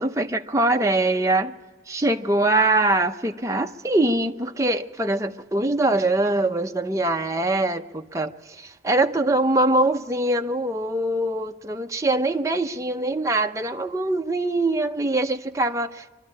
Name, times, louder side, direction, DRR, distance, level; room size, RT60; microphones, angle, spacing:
voice 1, 0.0-1.5 1.9-16.1, right 2 dB, 15° right, 0.7 m, -23 dB
25.0 x 12.5 x 9.7 m
head